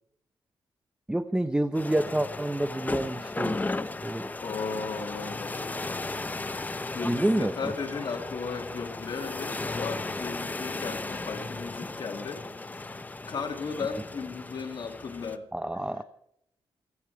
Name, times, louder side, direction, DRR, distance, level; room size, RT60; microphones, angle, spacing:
voice 1, 1.1-3.6 4.0-4.3 7.0-7.7 15.5-16.0, right 1 dB, 10° right, 11 dB, 0.6 m, -28 dB
sound 1, 1.7-15.4, left 2 dB, 20° left, 0.8 m, -35 dB
voice 2, 4.4-6.0 6.9-12.4 12.8-13.0 13.3-15.5, left 5 dB, 50° left, 4 dB, 2.4 m, -36 dB
28.5 x 9.5 x 4.7 m, 0.76 s
wide cardioid pair, 120°, 9 cm